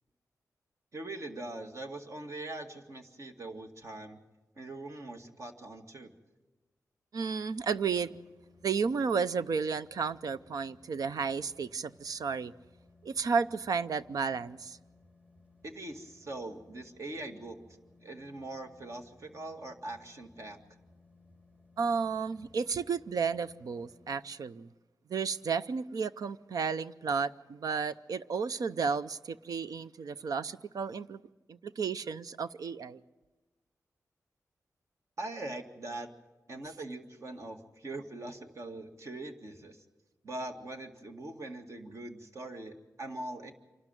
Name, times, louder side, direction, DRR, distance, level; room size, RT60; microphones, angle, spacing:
voice 1, 0.9-4.2 4.6-6.1 15.6-17.6 18.0-20.6 35.2-36.1 36.5-39.8 40.2-43.5, right 2 dB, 50° right, 2.1 m, -42 dB
voice 2, 7.1-8.1 8.6-12.5 13.0-14.8 21.8-24.7 25.1-31.2 31.5-33.0, right 5 dB, 75° right, 0.6 m, -32 dB
sound 1, 7.7-24.2, left 3 dB, 20° right, 4.4 m, -62 dB
27.0 x 12.0 x 9.1 m
wide cardioid pair, 85°, 6 cm